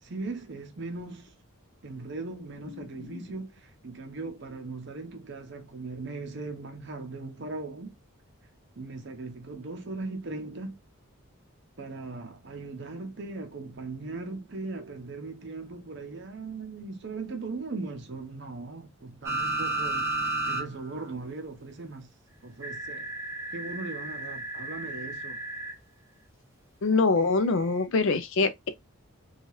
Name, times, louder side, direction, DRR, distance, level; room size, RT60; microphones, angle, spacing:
voice 1, 0.0-1.3 1.8-8.0 8.8-10.8 11.8-22.1 22.4-23.1 23.5-25.4, right 3 dB, 50° right, 0.7 m, -39 dB
sound 1, 19.2-20.6 21.0-21.1 22.6-25.7 27.4-27.5, right 2 dB, 15° right, 0.7 m, -32 dB
voice 2, 26.8-28.7, left 4 dB, 60° left, 0.4 m, -24 dB
2.8 x 2.3 x 3.0 m
head